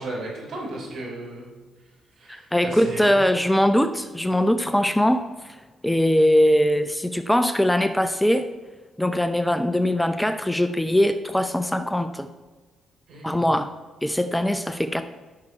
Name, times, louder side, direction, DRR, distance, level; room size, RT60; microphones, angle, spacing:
voice 1, 0.0-1.5 2.2-3.2 13.1-13.4, right 2 dB, 65° right, -3 dB, 3.4 m, -35 dB
voice 2, 2.3-5.6 5.8-8.5 9.0-12.3 13.2-13.7 14.0-15.0, equal, 5° left, 10 dB, 0.7 m, -21 dB
12.5 x 6.1 x 4.4 m, 1.3 s
hypercardioid pair, 40°, 0 cm